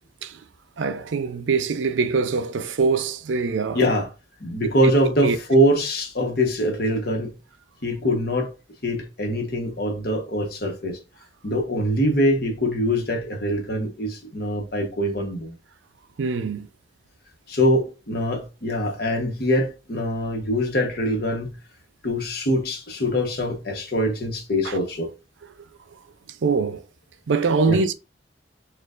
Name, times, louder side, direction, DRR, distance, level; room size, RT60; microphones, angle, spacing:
voice 1, 0.8-3.8 5.2-5.4 16.2-16.7 24.6-24.8 26.4-26.8 27.3-27.9, right 4 dB, 85° right, 0.5 m, -23 dB
voice 2, 3.7-4.1 4.4-7.3 7.8-8.5 8.8-11.0 11.4-15.5 17.5-21.6 22.0-25.1 27.7-27.8, equal, 55° left, 1.1 m, -23 dB
6.4 x 2.4 x 2.4 m
head